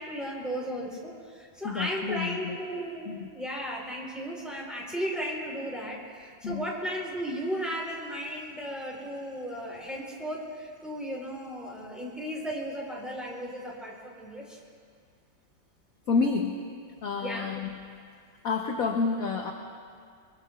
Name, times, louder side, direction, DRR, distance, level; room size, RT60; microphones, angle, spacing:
voice 1, 0.0-14.6 17.2-17.5, equal, ahead, -4 dB, 3.9 m, -35 dB
voice 2, 1.6-2.6 3.1-3.3 6.4-6.7 11.6-11.7 16.1-16.6 17.0-17.8 18.4-19.5, left 4 dB, 55° left, 1 dB, 1.2 m, -29 dB
24.5 x 23.5 x 2.5 m, 2.1 s
omnidirectional pair, 2.1 m